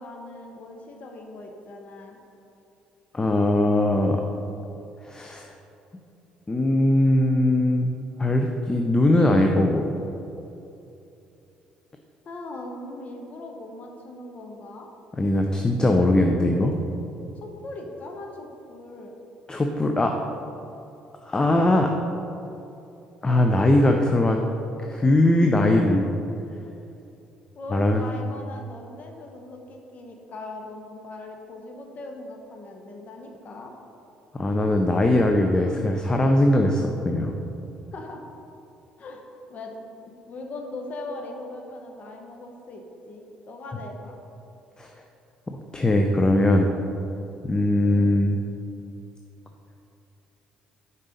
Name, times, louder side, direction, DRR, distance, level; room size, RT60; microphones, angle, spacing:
voice 1, 0.0-2.2 12.2-14.9 17.4-19.2 27.5-33.7 37.9-38.2 39.0-39.8 40.3-44.2 47.8-48.1, left 2 dB, 50° left, 2 dB, 0.8 m, -40 dB
voice 2, 3.1-4.2 5.0-5.5 6.5-7.9 8.2-9.9 15.1-16.7 19.5-20.1 21.2-21.9 23.2-24.4 24.9-26.1 27.7-28.0 34.3-37.3 44.8-44.9 45.5-46.7 47.4-48.4, left 1 dB, 20° left, 3 dB, 0.5 m, -20 dB
5.4 x 4.0 x 5.2 m, 2.8 s
hypercardioid pair, 55°, 3 cm